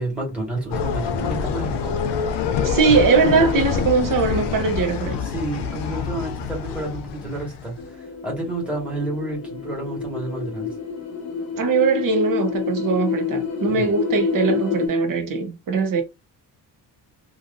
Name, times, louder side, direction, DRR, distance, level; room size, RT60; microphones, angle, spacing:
voice 1, 0.0-1.9 5.2-10.7 13.6-13.9, right 2 dB, 5° right, 1.8 m, -30 dB
amusement park autodrome, 0.7-7.8, left 6 dB, 75° left, 0.6 m, -26 dB
voice 2, 2.6-5.2 11.6-16.0, right 4 dB, 50° right, 1.0 m, -20 dB
sound 1, 7.8-14.9, left 5 dB, 35° left, 0.9 m, -28 dB
3.2 x 2.5 x 2.6 m
cardioid pair, 140°, 42 cm